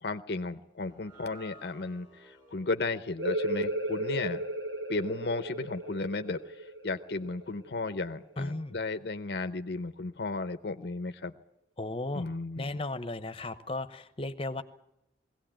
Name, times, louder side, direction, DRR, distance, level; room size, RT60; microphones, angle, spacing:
voice 1, 0.0-4.4 4.9-11.3 12.1-12.8, left 3 dB, 65° left, 9 dB, 0.7 m, -34 dB
sound 1, 0.8-7.2, right 1 dB, 20° right, 5.8 m, -57 dB
sound 2, 3.2-8.6, right 1 dB, 75° right, 1.2 m, -35 dB
voice 2, 8.4-8.8 11.8-12.2 12.6-14.6, left 2 dB, 30° left, 10 dB, 0.9 m, -35 dB
20.5 x 17.0 x 8.9 m, 0.82 s
head